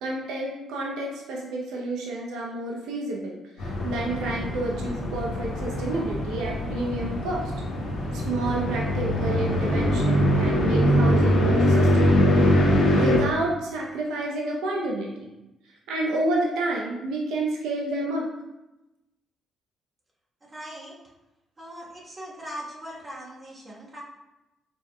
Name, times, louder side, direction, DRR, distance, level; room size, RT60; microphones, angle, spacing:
voice 1, 0.0-7.5 8.1-12.5 12.9-15.3 15.9-18.3, right 2 dB, 90° right, -2 dB, 0.6 m, -29 dB
sound 1, 3.6-13.2, equal, 85° left, 1.3 m, -23 dB
voice 2, 20.4-20.9 21.6-24.0, equal, 30° right, -4 dB, 1.3 m, -40 dB
5.0 x 3.6 x 2.2 m, 0.98 s
cardioid pair, 90°, 0 cm